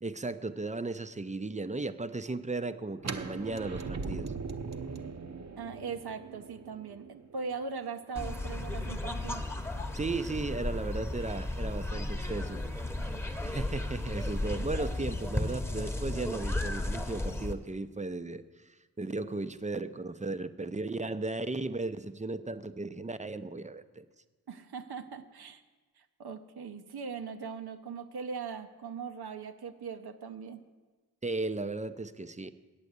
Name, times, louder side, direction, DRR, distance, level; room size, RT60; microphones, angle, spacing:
voice 1, 0.0-4.3 9.9-12.8 13.4-18.4 19.0-24.1 31.2-32.5, right 3 dB, 20° right, 11 dB, 0.6 m, -35 dB
sound 1, 3.0-8.8, right 4 dB, 45° right, 0.9 m, -40 dB
voice 2, 5.6-9.4 14.6-14.7 24.5-25.6 26.0-30.6, right 5 dB, 70° right, 8 dB, 0.9 m, -40 dB
sound 2, 8.2-17.5, left 1 dB, 5° left, 1.1 m, -34 dB
8.5 x 8.2 x 8.1 m, 1.3 s
cardioid pair, 45°, 39 cm